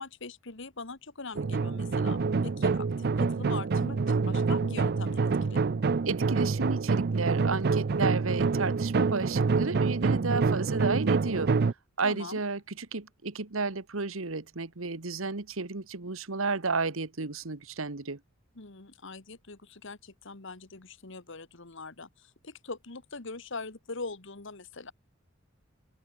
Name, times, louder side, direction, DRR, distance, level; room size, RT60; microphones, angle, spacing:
voice 1, 0.0-5.6 12.0-12.4 18.6-24.9, left 3 dB, 65° left, 1.8 m, -42 dB
sound 1, 1.4-11.7, right 4 dB, 50° right, 0.5 m, -27 dB
voice 2, 6.0-11.5 12.0-18.2, right 3 dB, 80° right, 1.5 m, -32 dB
head